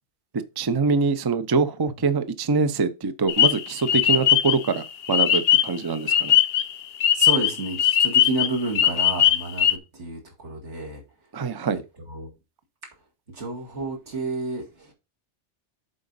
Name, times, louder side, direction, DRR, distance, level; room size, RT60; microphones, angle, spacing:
voice 1, 0.6-6.4 11.3-11.8, right 4 dB, 30° right, 0.4 m, -24 dB
sound 1, 3.3-5.8 6.1-9.8, left 10 dB, 65° left, 0.8 m, -20 dB
voice 2, 7.1-11.0 11.4-11.5 12.1-12.3 13.3-14.9, right 2 dB, 80° right, 2.4 m, -30 dB
7.6 x 4.9 x 4.0 m
omnidirectional pair, 1.2 m